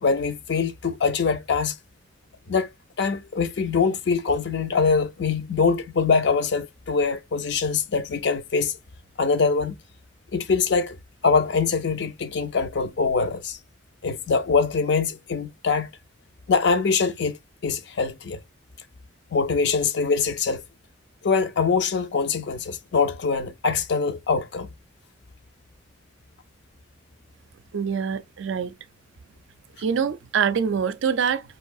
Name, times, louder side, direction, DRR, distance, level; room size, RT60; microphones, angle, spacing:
voice 1, 0.0-1.8 2.5-2.7 3.0-8.7 9.2-9.8 10.3-11.0 11.2-13.6 14.0-15.9 16.5-17.4 17.6-18.4 19.3-20.6 21.2-24.7, left 5 dB, 60° left, 0.4 m, -23 dB
voice 2, 27.7-28.7 29.8-31.4, right 7 dB, 75° right, 0.4 m, -24 dB
4.4 x 2.6 x 2.3 m
head